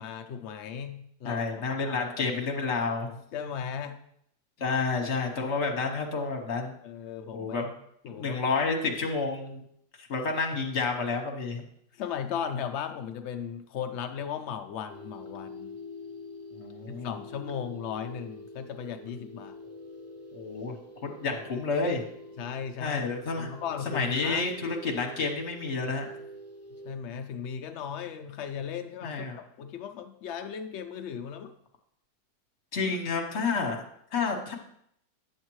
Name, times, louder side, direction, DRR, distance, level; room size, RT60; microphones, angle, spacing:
voice 1, 0.0-2.4 3.1-4.0 6.8-7.8 8.0-8.6 12.0-15.8 16.9-19.6 22.4-24.4 26.8-31.5 32.8-33.0, left 7 dB, 80° left, 7 dB, 0.6 m, -37 dB
voice 2, 1.2-3.1 4.6-6.7 7.3-7.7 8.1-9.6 10.0-11.6 16.5-17.2 20.3-20.8 21.0-22.0 22.8-23.5 23.9-26.1 29.0-29.4 32.7-33.8 34.1-34.5, left 4 dB, 45° left, 2 dB, 1.3 m, -30 dB
sound 1, 14.9-26.9, left 1 dB, 25° left, 0.3 m, -45 dB
9.5 x 7.2 x 3.1 m, 0.70 s
omnidirectional pair, 1.8 m